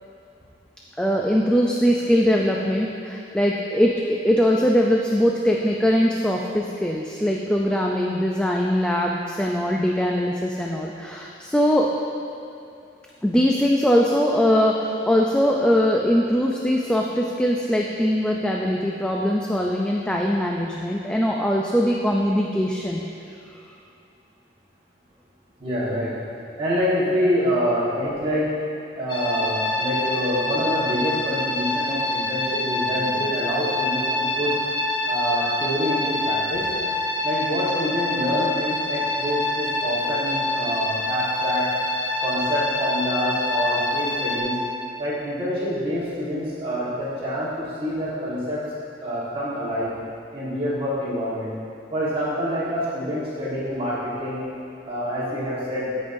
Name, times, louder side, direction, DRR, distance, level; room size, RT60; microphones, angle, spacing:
voice 1, 1.0-11.9 13.2-23.0, equal, 5° left, -1 dB, 0.4 m, -21 dB
voice 2, 25.6-26.1 26.6-28.5 29.0-34.5 35.1-36.7 37.2-41.7 42.2-44.6 45.0-48.6 49.0-49.9 50.3-51.5 51.9-54.5 54.8-55.9, equal, 30° right, -9 dB, 1.5 m, -26 dB
sound 1, 29.1-44.4, left 1 dB, 30° left, 0.9 m, -26 dB
14.0 x 5.3 x 2.6 m, 2.6 s
head